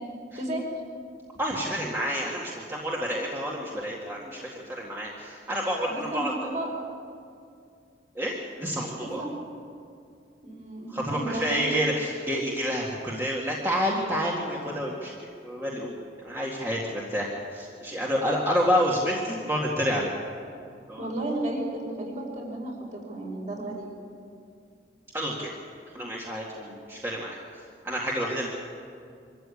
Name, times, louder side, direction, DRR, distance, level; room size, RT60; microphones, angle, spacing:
voice 1, 1.4-6.5 8.2-9.2 10.9-15.9 16.2-20.1 20.9-21.1 25.1-25.5 25.9-27.4 27.8-28.5, equal, 15° right, -4 dB, 2.0 m, -29 dB
voice 2, 5.9-6.7 9.0-9.3 10.4-11.7 21.0-23.9, right 1 dB, 40° right, -1 dB, 4.8 m, -33 dB
24.5 x 14.0 x 8.5 m, 2.4 s
head